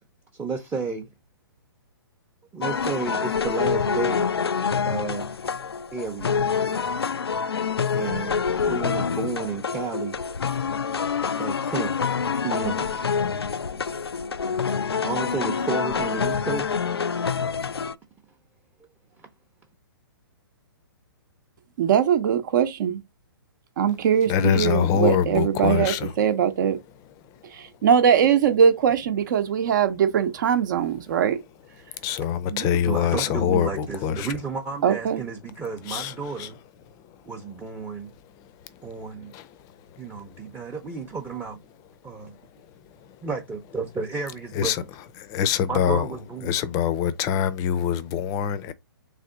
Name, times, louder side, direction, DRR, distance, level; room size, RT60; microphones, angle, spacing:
voice 1, 0.4-1.1 2.5-4.3 4.8-5.5 5.9-6.6 7.9-10.2 11.4-12.0 12.3-12.9 15.0-16.8 32.8-36.6 37.3-38.1 38.8-39.4 40.0-41.6 42.0-42.3 43.2-44.7 45.7-46.5, right 5 dB, 10° right, 0.7 m, -32 dB
sound 1, 2.6-17.9, left 6 dB, 90° left, 0.4 m, -26 dB
voice 2, 21.8-23.0 23.8-26.8 27.8-31.4 32.5-32.7 34.8-35.2, right 8 dB, 50° right, 0.8 m, -21 dB
voice 3, 24.3-26.1 31.9-34.3 35.9-36.5 38.4-38.5 39.0-39.6 39.9-40.0 40.3-40.4 43.0-43.1 44.5-44.8 45.2-46.1 46.4-48.7, left 9 dB, 25° left, 0.6 m, -25 dB
3.7 x 3.3 x 3.7 m
hypercardioid pair, 125°, 13 cm